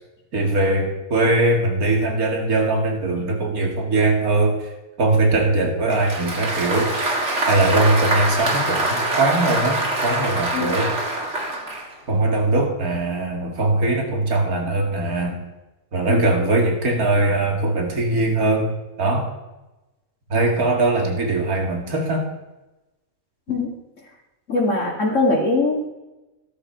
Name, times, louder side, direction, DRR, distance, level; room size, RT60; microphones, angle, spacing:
voice 1, 0.3-4.7 5.0-7.0 7.5-10.9 12.1-15.4 15.9-18.7 19.0-19.3 20.3-22.3, right 2 dB, 85° right, 1 dB, 2.6 m, -21 dB
Applause, 5.9-11.9, right 2 dB, 50° right, 2.3 m, -24 dB
voice 2, 24.5-25.9, left 2 dB, 60° left, -3 dB, 2.6 m, -21 dB
15.0 x 13.0 x 4.5 m, 1.0 s
omnidirectional pair, 1.5 m